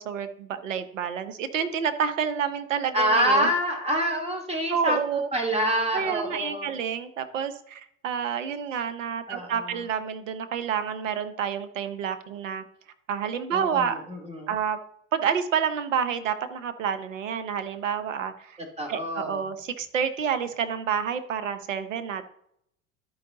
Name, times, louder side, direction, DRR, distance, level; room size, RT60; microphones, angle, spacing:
voice 1, 0.0-3.5 4.7-5.3 5.9-12.6 13.1-14.0 14.5-14.8 15.1-18.6 18.9-22.2, right 7 dB, 85° right, 10 dB, 0.9 m, -29 dB
voice 2, 2.9-5.0 5.3-6.7 9.3-9.8 13.5-14.5 18.8-19.5, equal, 15° right, 2 dB, 2.4 m, -26 dB
12.0 x 4.8 x 3.8 m, 0.71 s
hypercardioid pair, 80°, 37 cm